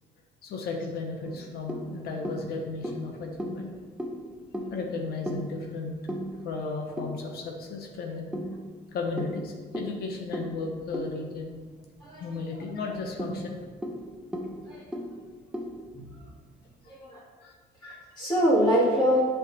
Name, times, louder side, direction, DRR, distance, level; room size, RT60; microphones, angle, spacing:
voice 1, 0.4-3.7 4.7-6.0 6.4-8.3 8.9-11.5 12.2-13.7 17.4-17.5, left 3 dB, 70° left, 2 dB, 1.2 m, -35 dB
sound 1, 1.2-7.7 8.3-12.2 12.5-12.6 13.0-16.6, equal, 5° right, 0.8 m, -38 dB
voice 2, 16.9-17.2 17.8-19.2, equal, 25° left, -6 dB, 2.2 m, -25 dB
8.1 x 5.1 x 4.2 m, 1.5 s
cardioid pair, 110°, 17 cm